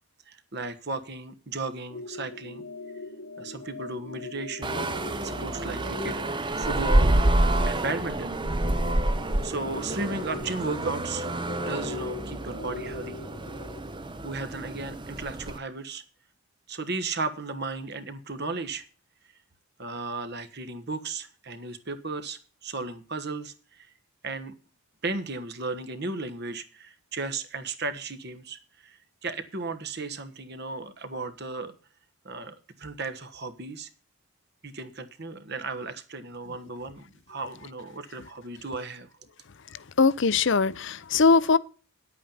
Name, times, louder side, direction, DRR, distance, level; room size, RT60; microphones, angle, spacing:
voice 1, 0.3-2.6 3.4-4.9 5.2-7.2 7.6-8.4 9.4-11.3 11.6-13.3 14.2-16.0 16.7-18.8 19.8-23.9 24.2-24.5 25.0-31.7 32.2-33.9 34.6-39.1, right 3 dB, 45° right, 1.3 m, -35 dB
sound 1, 1.9-13.8, left 2 dB, 85° left, 1.7 m, -41 dB
sound 2, 4.6-15.6, right 1 dB, 20° right, 0.7 m, -28 dB
voice 2, 40.0-41.6, left 4 dB, 55° left, 0.6 m, -21 dB
10.5 x 8.5 x 5.5 m
head